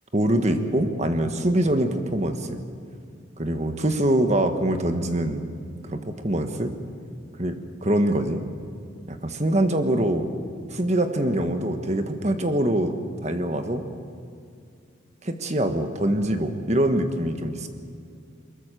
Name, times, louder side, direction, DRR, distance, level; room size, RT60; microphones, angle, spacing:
voice 1, 0.1-2.6 3.4-5.4 5.8-6.7 7.4-7.5 7.8-8.4 9.1-10.3 10.7-12.9 13.2-13.8 15.2-17.7, right 1 dB, 35° right, 7 dB, 1.6 m, -24 dB
23.0 x 21.5 x 6.9 m, 2.4 s
head